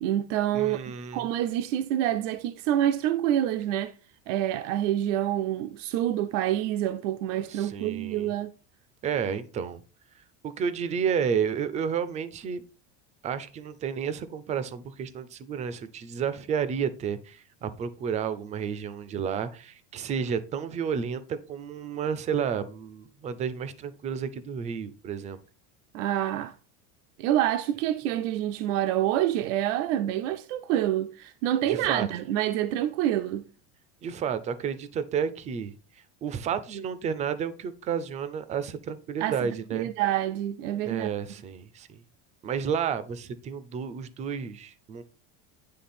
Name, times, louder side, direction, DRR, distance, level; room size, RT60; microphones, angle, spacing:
voice 1, 0.0-0.8 1.1-3.9 4.3-8.5 25.9-26.5 27.2-33.4 39.2-41.1, right 12 dB, 85° right, 0.5 m, -27 dB
voice 2, 0.5-1.3 7.5-8.3 9.0-9.8 10.2-12.6 13.2-25.4 31.7-32.1 34.0-35.7 36.2-39.9 40.8-42.0 42.4-45.0, right 7 dB, 20° right, 0.3 m, -31 dB
9.5 x 3.3 x 4.2 m
cardioid pair, 160°, 37 cm